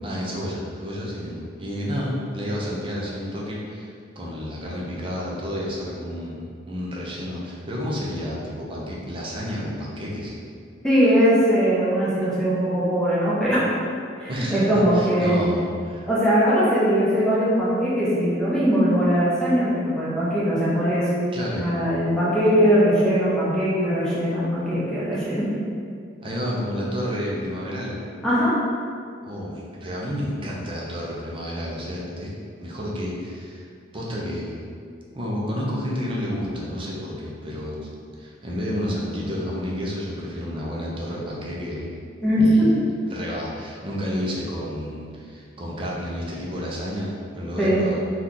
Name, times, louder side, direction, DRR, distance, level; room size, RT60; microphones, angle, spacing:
voice 1, 0.0-10.3 14.3-16.1 21.3-21.7 26.2-28.0 29.2-32.3 32.6-33.7 33.9-34.6 35.1-37.8 38.2-42.0 42.4-42.7 43.1-48.0, equal, 30° right, -4 dB, 0.6 m, -30 dB
voice 2, 10.8-13.7 14.2-15.4 16.1-21.1 21.6-25.5 28.2-28.5 42.2-42.7 47.6-47.9, equal, 5° left, -10 dB, 0.8 m, -20 dB
2.9 x 2.4 x 3.6 m, 2.3 s
head